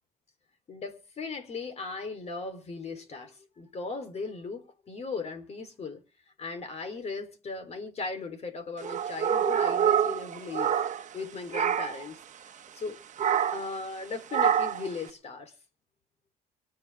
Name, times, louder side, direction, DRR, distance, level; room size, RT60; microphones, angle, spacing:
voice 1, 0.7-6.0 6.4-10.7 11.1-13.0 13.5-15.5, left 4 dB, 40° left, 3.9 m, -37 dB
sound 1, 8.8-11.2 11.5-12.1 13.2-13.7 14.3-14.9, right 9 dB, 45° right, 1.2 m, -26 dB
26.0 x 9.3 x 3.7 m
cardioid pair, 110°, 17 cm